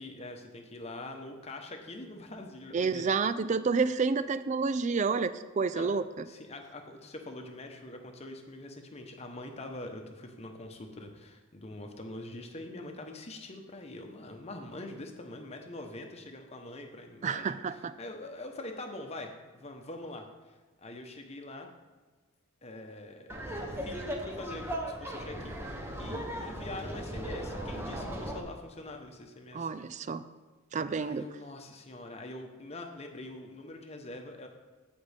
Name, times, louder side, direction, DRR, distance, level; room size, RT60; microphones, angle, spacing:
voice 1, 0.0-3.0 5.7-5.9 6.2-17.4 17.7-20.3 20.8-21.7 22.6-23.4 23.7-29.7 31.0-34.5, left 2 dB, 30° left, 4 dB, 0.9 m, -44 dB
voice 2, 2.7-6.3 17.2-17.9 29.5-30.2 30.7-31.3, right 5 dB, 35° right, 13 dB, 0.3 m, -29 dB
Laughter, 23.3-28.4, equal, 10° right, 0.9 m, -37 dB
15.5 x 5.2 x 3.5 m, 1.4 s
head